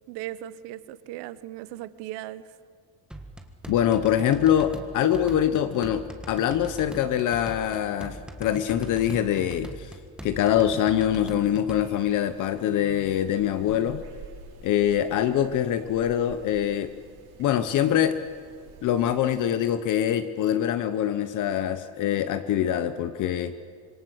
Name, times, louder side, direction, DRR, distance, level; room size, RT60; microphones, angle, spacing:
voice 1, 0.1-2.6, right 14 dB, 90° right, 15 dB, 1.2 m, -38 dB
sound 1, 3.1-11.8, right 1 dB, ahead, 1.6 m, -41 dB
voice 2, 3.7-10.0 10.2-14.0 14.6-16.9 17.4-18.2 18.8-23.5, left 10 dB, 50° left, 11 dB, 1.0 m, -24 dB
sound 2, 11.7-19.2, right 4 dB, 65° right, 6.7 m, -49 dB
26.0 x 22.5 x 8.0 m, 2.1 s
cardioid pair, 160°, 40 cm